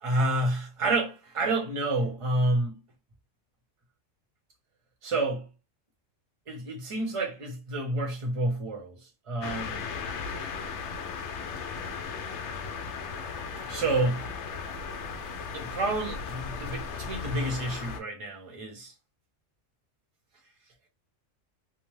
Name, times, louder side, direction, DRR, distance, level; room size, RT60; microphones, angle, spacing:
voice 1, 0.0-2.7 5.0-5.5 6.5-9.0 9.3-9.8 13.6-14.2 15.5-18.9, right 2 dB, 30° right, 0.7 m, -29 dB
sound 1, 9.4-18.0, left 5 dB, 70° left, 0.9 m, -36 dB
2.8 x 2.1 x 3.1 m
omnidirectional pair, 1.3 m